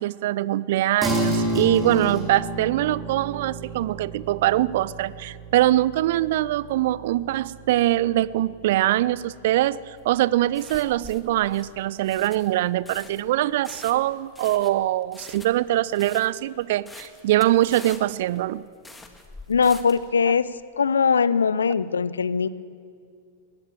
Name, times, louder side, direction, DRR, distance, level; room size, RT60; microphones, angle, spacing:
voice 1, 0.0-18.6, right 14 dB, 50° right, 21 dB, 0.5 m, -23 dB
sound 1, 1.0-10.7, right 1 dB, 5° right, 5.0 m, -32 dB
sound 2, 10.0-20.1, left 2 dB, 10° left, 1.9 m, -45 dB
voice 2, 19.5-20.5 20.8-22.5, left 6 dB, 70° left, 17 dB, 0.6 m, -21 dB
21.5 x 18.5 x 7.5 m, 2.3 s
figure-of-eight pair, 95°, 0 cm